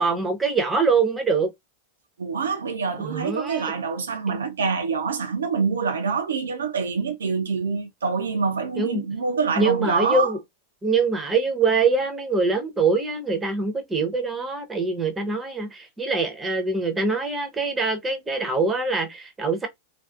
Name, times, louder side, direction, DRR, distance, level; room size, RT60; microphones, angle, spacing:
voice 1, 0.0-1.5 3.0-3.7 8.8-9.0 9.6-10.4 10.8-19.7, right 4 dB, 10° right, 0.7 m, -24 dB
voice 2, 2.2-10.3, right 5 dB, 70° right, 0.4 m, -26 dB
2.5 x 2.3 x 2.3 m
figure-of-eight pair, 90°, 0 cm